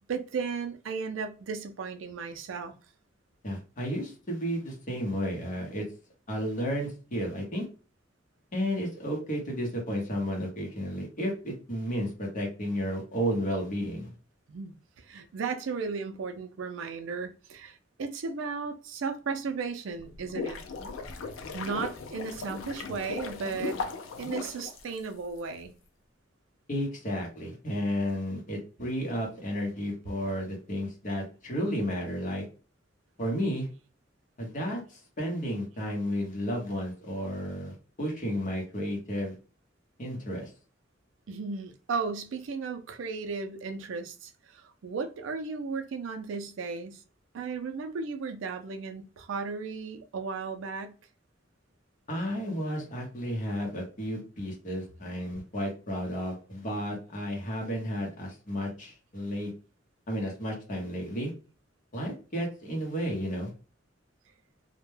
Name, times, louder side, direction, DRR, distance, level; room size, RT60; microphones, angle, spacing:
voice 1, 0.1-2.7 14.5-20.6 21.5-23.8 24.2-25.7 41.3-47.0 47.3-50.9, right 5 dB, 75° right, 0.4 m, -35 dB
voice 2, 3.4-5.9 6.3-7.6 8.5-14.1 26.7-32.4 33.2-33.7 34.4-39.3 40.0-40.5 52.1-59.5 60.1-61.3 61.9-63.5, equal, 40° left, 0.9 m, -32 dB
sound 1, 20.0-25.4, left 4 dB, 85° left, 0.4 m, -37 dB
2.2 x 2.1 x 3.1 m
head